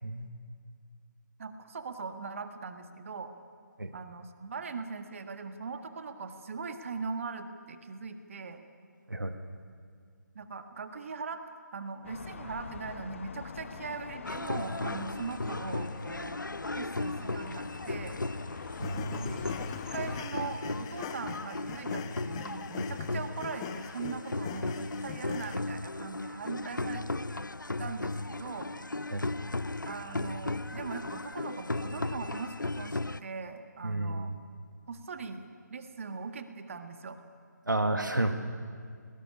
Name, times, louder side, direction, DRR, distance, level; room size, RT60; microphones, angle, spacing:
voice 1, 1.4-3.3 3.9-8.6 10.4-11.4 11.7-16.4 16.8-18.2 19.3-19.4 19.9-27.1 27.8-28.7 29.9-34.3 34.9-35.4 35.7-37.2, right 5 dB, 45° right, 7 dB, 1.7 m, -40 dB
sound 1, 12.0-20.2, left 5 dB, 40° left, 1.0 m, -44 dB
sound 2, 14.2-33.2, left 2 dB, 90° left, 0.6 m, -36 dB
sound 3, 18.8-25.6, left 11 dB, 20° left, 0.5 m, -43 dB
voice 2, 18.8-19.4 29.1-29.2 33.8-34.4 37.7-38.3, right 2 dB, 85° right, 6 dB, 1.8 m, -31 dB
19.5 x 17.5 x 9.9 m, 2.2 s
figure-of-eight pair, 150°, 10 cm